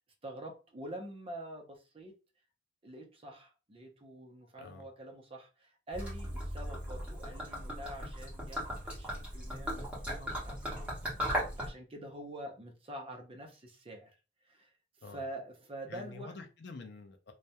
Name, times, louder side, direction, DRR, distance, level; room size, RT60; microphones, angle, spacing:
voice 1, 0.2-2.1 2.8-14.1 14.5-14.7 15.0-16.4, right 1 dB, 30° right, 0.5 m, -46 dB
voice 2, 4.6-4.9 15.0-15.2 15.9-17.3, left 3 dB, 60° left, 0.4 m, -47 dB
Gurgling / Liquid, 5.9-11.7, equal, 5° right, 0.9 m, -37 dB
2.3 x 2.1 x 2.8 m
head